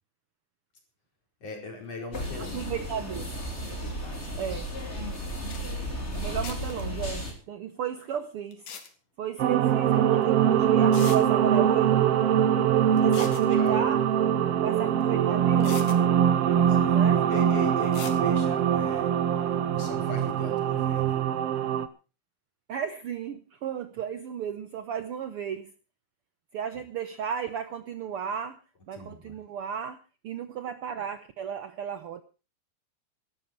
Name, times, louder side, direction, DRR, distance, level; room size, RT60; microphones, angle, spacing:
voice 1, 1.4-3.3 3.7-4.8 12.9-13.9 16.5-19.1 19.4-21.2 28.9-29.4, left 2 dB, 50° left, 1 dB, 5.7 m, -41 dB
sound 1, 2.1-7.3, equal, 20° left, 3.5 m, -34 dB
voice 2, 2.4-3.3 4.3-4.7 6.1-8.7 9.2-12.2 12.9-14.0 14.6-16.0 16.9-17.3 22.7-25.7 26.5-28.6 28.9-32.2, right 8 dB, 80° right, 11 dB, 1.2 m, -34 dB
sound 2, 5.2-5.3 5.5-5.6 6.4-6.8 8.5-8.9 10.2-10.3 10.9-11.2 13.0-13.5 15.0-15.1 15.6-16.0 17.9-18.2, left 7 dB, 75° left, 3.4 m, -40 dB
sound 3, 9.4-21.9, right 9 dB, 65° right, 1.6 m, -23 dB
17.5 x 13.0 x 4.5 m, 0.33 s
omnidirectional pair, 3.6 m